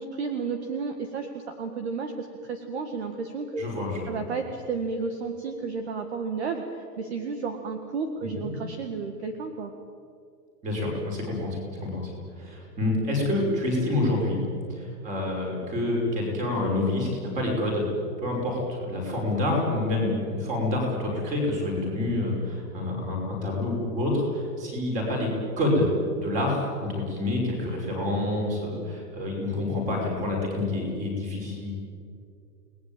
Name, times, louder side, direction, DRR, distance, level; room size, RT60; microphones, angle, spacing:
voice 1, 0.0-3.6 4.1-9.7, right 4 dB, 40° right, 6 dB, 1.9 m, -32 dB
voice 2, 3.6-4.2 8.4-8.5 10.6-12.1 12.4-14.5 14.8-17.9 18.2-25.3 25.6-31.7, left 2 dB, 15° right, 0 dB, 5.6 m, -27 dB
30.0 x 19.5 x 9.0 m, 2.4 s
hypercardioid pair, 175°, 49 cm